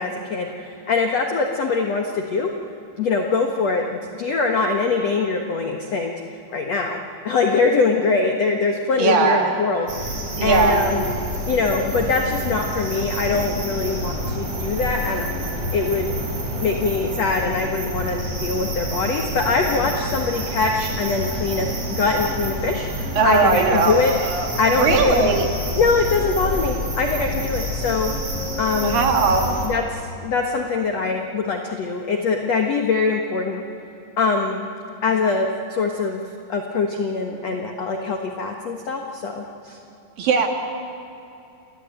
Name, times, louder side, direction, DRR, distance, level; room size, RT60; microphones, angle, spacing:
voice 1, 0.0-2.5 3.0-6.1 6.5-7.0 7.2-9.9 10.4-11.1 11.5-15.3 15.7-16.1 16.6-24.1 24.6-25.3 25.8-28.1 28.6-29.0 29.6-33.6 34.2-34.7 35.0-36.2 36.5-39.8, left 4 dB, 85° left, 3 dB, 1.4 m, -23 dB
voice 2, 9.0-9.5 10.4-10.9 23.1-25.5 28.8-29.5 40.2-40.5, right 4 dB, 55° right, 3 dB, 3.2 m, -19 dB
sound 1, 9.9-29.7, equal, 35° right, 5.1 m, -28 dB
29.0 x 21.0 x 9.0 m, 2.8 s
omnidirectional pair, 5.4 m